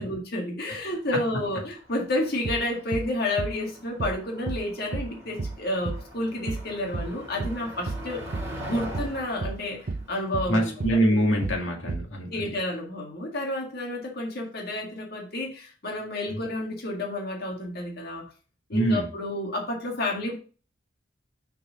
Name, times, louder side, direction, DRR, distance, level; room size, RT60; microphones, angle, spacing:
voice 1, 0.0-8.2 8.6-11.2 12.3-18.3 18.7-20.4, left 1 dB, 55° left, 0 dB, 1.8 m, -30 dB
Motor vehicle (road), 0.8-11.2, equal, 15° right, 2.4 m, -43 dB
sound 1, 2.4-2.7 2.9-3.1 3.4-3.6 4.0-4.2 4.5-4.7 4.9-5.1 5.4-5.6 5.8-6.1 6.5-6.7 6.9-7.1 7.4-7.6 7.9-8.1 8.3-8.5 8.9-9.1 9.4-9.6 9.9-10.1 10.3-10.5 10.8-11.0 11.4-11.6 11.9-12.1, right 3 dB, 45° right, 0.5 m, -32 dB
voice 2, 10.5-12.4 16.3-16.4 18.7-19.1, right 1 dB, 90° left, 0 dB, 2.1 m, -24 dB
6.4 x 4.7 x 5.0 m, 0.35 s
head